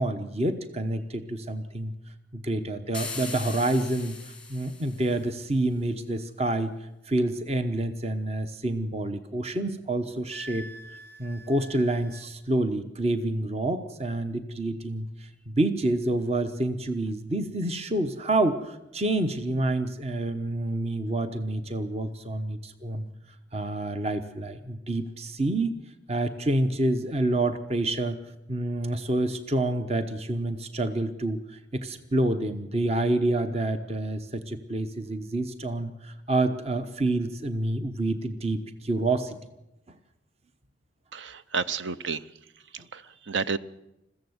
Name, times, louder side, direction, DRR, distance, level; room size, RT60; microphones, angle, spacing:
voice 1, 0.0-1.9 2.3-6.7 7.1-23.1 23.5-25.7 26.1-28.2 28.5-39.4, right 2 dB, 30° right, 10 dB, 1.0 m, -28 dB
sound 1, 2.9-5.3, left 4 dB, 5° left, 1.4 m, -39 dB
Wind instrument woodwind instrument, 10.3-12.3, right 1 dB, 50° right, 1.3 m, -45 dB
voice 2, 41.1-42.2 42.9-43.6, right 5 dB, 75° right, 14 dB, 0.7 m, -30 dB
21.5 x 15.0 x 8.0 m, 0.92 s
head